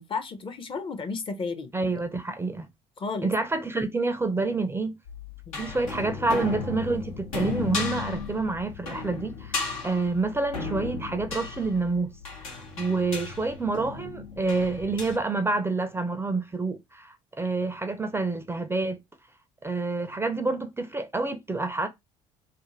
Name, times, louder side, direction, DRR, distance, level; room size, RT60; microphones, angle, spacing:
voice 1, 0.0-1.7 3.0-3.3 5.5-5.6, left 4 dB, 30° left, 0.6 m, -33 dB
voice 2, 1.7-2.7 3.2-5.0 5.6-12.1 12.4-19.0 19.6-21.9, right 3 dB, 15° right, 0.5 m, -28 dB
sound 1, 5.1-15.2, left 4 dB, 85° left, 0.8 m, -35 dB
2.5 x 2.1 x 3.0 m
hypercardioid pair, 60°, 17 cm